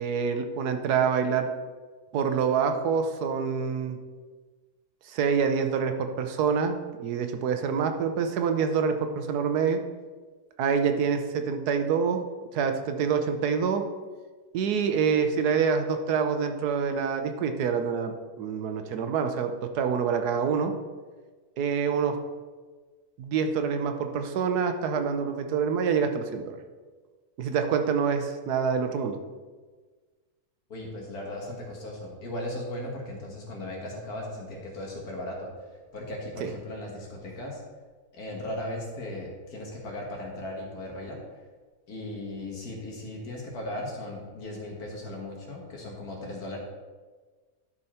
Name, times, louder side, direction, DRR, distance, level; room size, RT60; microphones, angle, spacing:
voice 1, 0.0-1.5 2.1-4.0 5.1-9.8 10.6-12.2 12.5-13.8 14.5-20.7 21.6-22.1 23.2-26.5 27.4-29.2 36.4-36.5, right 6 dB, 85° right, 7 dB, 1.3 m, -26 dB
voice 2, 30.7-35.5 35.9-37.6 38.1-41.2 41.9-46.6, left 1 dB, 75° left, -1 dB, 2.2 m, -37 dB
11.5 x 5.0 x 4.3 m, 1.4 s
omnidirectional pair, 1.6 m